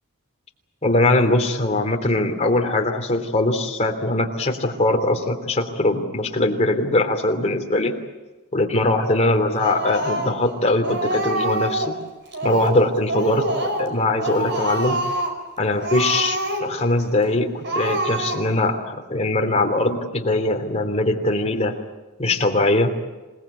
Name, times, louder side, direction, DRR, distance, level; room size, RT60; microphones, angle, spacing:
voice 1, 0.8-7.9 8.5-11.9 12.4-15.0 15.6-21.7 22.2-22.9, left 2 dB, 30° left, 3 dB, 3.1 m, -21 dB
Speech, 9.6-10.5 10.8-12.0 12.3-12.8 13.1-13.9 14.2-15.4 15.8-16.9 17.2-17.3 17.6-18.6, right 1 dB, 55° right, 5.3 m, -25 dB
27.5 x 19.0 x 8.5 m, 1.2 s
head